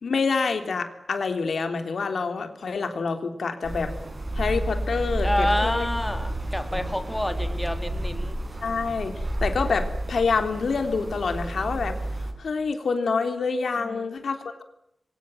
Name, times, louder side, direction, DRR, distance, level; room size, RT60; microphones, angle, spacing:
voice 1, 0.0-3.9 4.3-5.9 6.7-6.8 8.6-9.1 9.4-12.0 12.4-14.6, left 4 dB, 75° left, 7 dB, 3.4 m, -27 dB
sound 1, 3.6-12.3, right 1 dB, 30° right, 6.7 m, -30 dB
voice 2, 5.2-8.3 13.8-14.2, left 1 dB, 10° left, 7 dB, 3.2 m, -28 dB
28.0 x 24.0 x 7.9 m, 0.78 s
wide cardioid pair, 125°, 0 cm